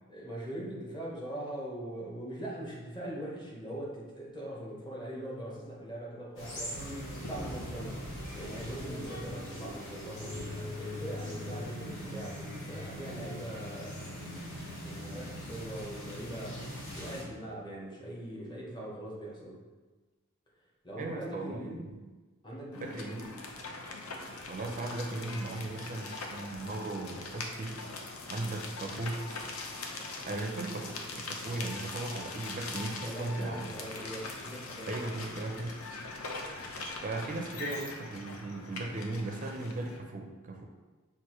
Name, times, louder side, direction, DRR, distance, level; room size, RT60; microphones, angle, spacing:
voice 1, 0.1-6.8 7.2-8.0 8.3-10.4 10.7-14.5 14.8-16.6 16.9-19.6 20.8-21.9 22.4-23.5 33.0-35.2, right 1 dB, 20° left, -4 dB, 0.9 m, -41 dB
sound 1, 6.4-17.2, equal, 65° left, 1.2 m, -40 dB
voice 2, 21.0-21.8 22.8-23.4 24.5-27.8 28.3-29.2 30.3-33.7 34.9-35.8 37.0-40.7, right 2 dB, 40° right, 2 dB, 0.4 m, -37 dB
sound 2, 22.7-40.0, left 3 dB, 80° left, 0.6 m, -42 dB
6.1 x 2.5 x 2.9 m, 1.3 s
head